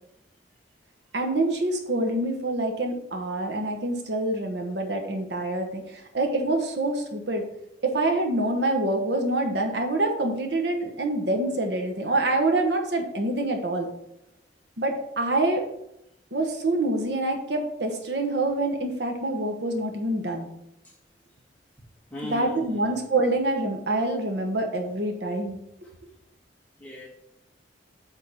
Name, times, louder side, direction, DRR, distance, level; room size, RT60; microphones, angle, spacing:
voice 1, 1.1-7.4 7.8-13.9 14.8-15.6 16.3-20.5 22.2-25.6, right 2 dB, 70° right, 1.1 m, -26 dB
voice 2, 22.1-23.0 26.8-27.1, left 1 dB, 10° left, 2.2 m, -36 dB
8.1 x 3.7 x 5.7 m
head